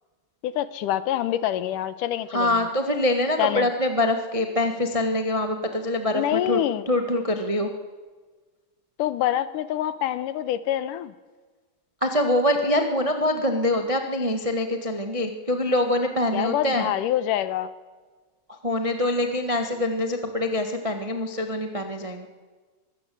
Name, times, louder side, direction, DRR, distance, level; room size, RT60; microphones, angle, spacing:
voice 1, 0.4-2.7 3.4-3.7 6.1-6.8 9.0-11.1 16.3-17.7, left 12 dB, 80° left, 14 dB, 2.3 m, -26 dB
voice 2, 2.3-6.6 6.9-7.7 12.0-16.9 18.6-22.3, left 1 dB, 55° right, 5 dB, 0.3 m, -24 dB
23.5 x 16.5 x 7.9 m, 1.4 s
omnidirectional pair, 3.9 m